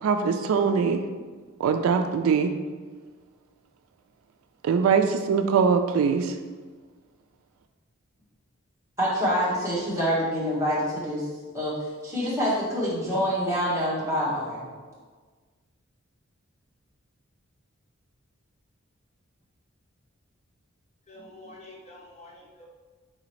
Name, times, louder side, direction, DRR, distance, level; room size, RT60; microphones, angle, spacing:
voice 1, 0.0-1.0 1.6-2.5 4.6-6.3, right 6 dB, 75° right, 8 dB, 0.3 m, -22 dB
voice 2, 9.0-11.3 11.5-14.7, equal, 15° right, -9 dB, 1.3 m, -26 dB
voice 3, 21.1-22.7, left 1 dB, 30° left, -3 dB, 0.7 m, -47 dB
4.1 x 3.8 x 3.0 m, 1.4 s
head